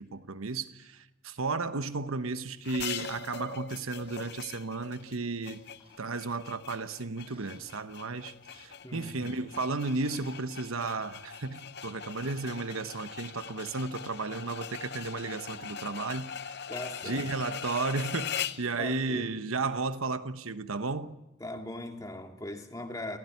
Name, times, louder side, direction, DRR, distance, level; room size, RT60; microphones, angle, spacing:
voice 1, 0.0-5.6 6.0-16.6 17.0-21.2, right 3 dB, 85° right, 1.2 m, -34 dB
sound 1, 2.6-18.7, left 8 dB, 50° left, 0.8 m, -41 dB
sound 2, 3.8-4.4 5.4-6.2 7.1-8.1 8.5-9.0 9.9-10.9 12.0-12.7 15.3-15.9 16.4-16.8, right 2 dB, 25° right, 4.4 m, -60 dB
voice 2, 8.8-9.4 16.7-17.3 18.8-19.3 21.4-23.2, left 1 dB, 15° left, 2.2 m, -40 dB
29.5 x 15.5 x 9.4 m
head